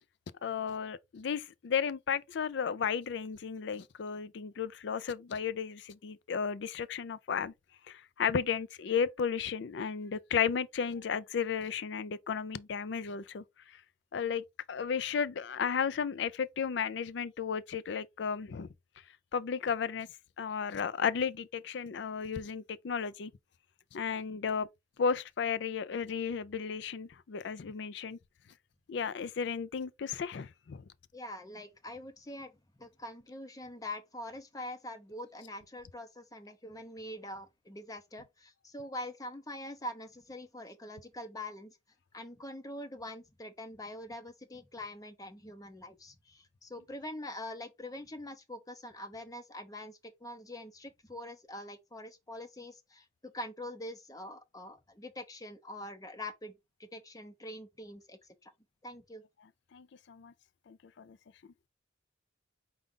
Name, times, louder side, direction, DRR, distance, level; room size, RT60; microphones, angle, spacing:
voice 1, 0.4-7.5 7.9-13.4 13.7-13.8 14.1-18.7 19.3-20.1 20.4-23.3 23.9-24.7 25.0-28.2 28.9-30.8 59.7-60.3 60.7-61.2, left 6 dB, 65° left, 0.4 m, -34 dB
voice 2, 31.1-41.8 42.1-58.5 58.8-59.2, left 1 dB, 20° left, 0.7 m, -44 dB
5.0 x 2.3 x 3.7 m
head